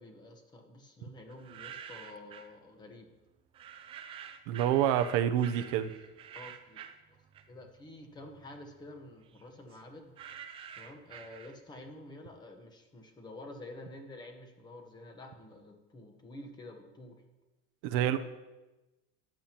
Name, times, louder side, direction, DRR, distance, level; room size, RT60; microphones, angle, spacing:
voice 1, 0.0-3.1 6.3-6.8 7.5-10.1 10.8-17.2, left 1 dB, 15° left, 4 dB, 1.0 m, -49 dB
sound 1, 1.3-2.6 3.5-7.8 8.1-11.9, right 8 dB, 20° right, 0.3 m, -49 dB
voice 2, 4.5-5.9 17.8-18.2, right 10 dB, 70° right, 8 dB, 0.7 m, -27 dB
14.0 x 10.5 x 2.9 m, 1.1 s
cardioid pair, 180°, 29 cm